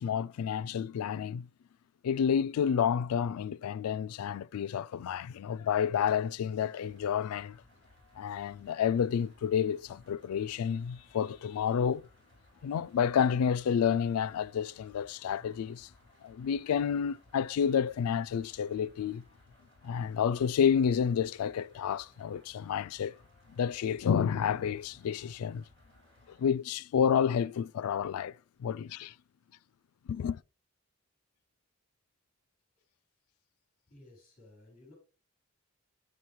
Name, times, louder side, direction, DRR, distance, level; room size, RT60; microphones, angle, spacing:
voice 1, 0.0-1.5 2.0-7.6 8.2-12.1 12.6-15.9 16.2-19.2 19.8-23.2 23.5-25.7 26.3-28.3 28.6-29.1 30.1-30.4, left 7 dB, 85° left, 0.3 m, -30 dB
sound 1, 6.7-26.5, left 1 dB, 55° right, 4.6 m, -62 dB
voice 2, 33.9-35.0, left 2 dB, 40° left, 4.3 m, -56 dB
8.2 x 7.2 x 3.1 m
head